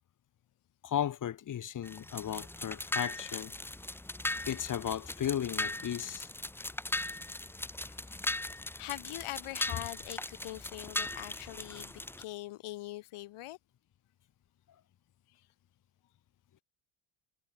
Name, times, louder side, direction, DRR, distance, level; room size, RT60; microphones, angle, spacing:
voice 1, 0.8-3.5 4.5-6.3, left 10 dB, 40° left, 1.4 m, -35 dB
sound 1, 1.8-12.2, left 2 dB, 5° left, 0.7 m, -39 dB
voice 2, 8.8-11.9 12.2-13.6, left 17 dB, 85° left, 6.7 m, -42 dB
cardioid pair, 155°, 49 cm